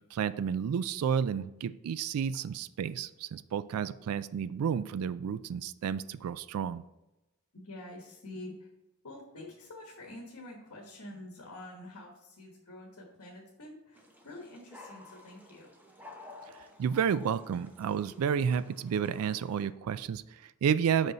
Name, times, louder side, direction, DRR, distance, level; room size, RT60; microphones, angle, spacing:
voice 1, 0.1-6.8 16.8-21.1, right 7 dB, 75° right, 15 dB, 0.3 m, -31 dB
voice 2, 7.5-8.7 9.0-15.7, left 1 dB, 85° left, 0 dB, 1.2 m, -47 dB
sound 1, 13.9-19.7, left 2 dB, 10° right, 0.8 m, -53 dB
6.0 x 5.4 x 4.0 m, 0.97 s
head